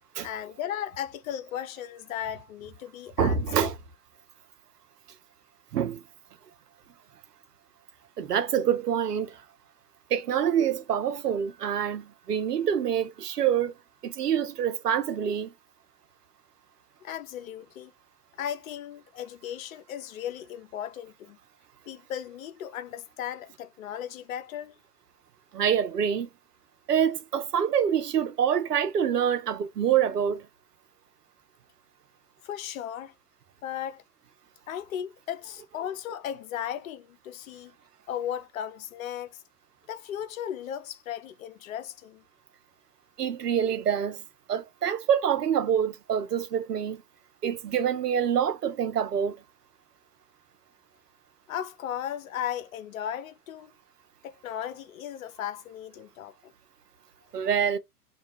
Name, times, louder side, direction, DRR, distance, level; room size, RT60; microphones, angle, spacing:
voice 1, 0.2-3.7 17.0-17.9 18.4-21.4 21.9-24.8 32.4-33.1 33.6-34.0 34.7-37.7 38.1-39.4 39.9-42.2 51.5-53.7 54.2-56.5, left 10 dB, 60° left, 0.5 m, -36 dB
voice 2, 3.2-3.7 5.7-6.0 8.2-9.4 10.1-13.7 14.0-15.5 25.5-26.3 26.9-30.5 43.2-44.2 44.5-47.0 47.4-49.4 57.3-57.8, right 8 dB, 80° right, 0.6 m, -26 dB
2.3 x 2.2 x 2.8 m
figure-of-eight pair, 95°, 47 cm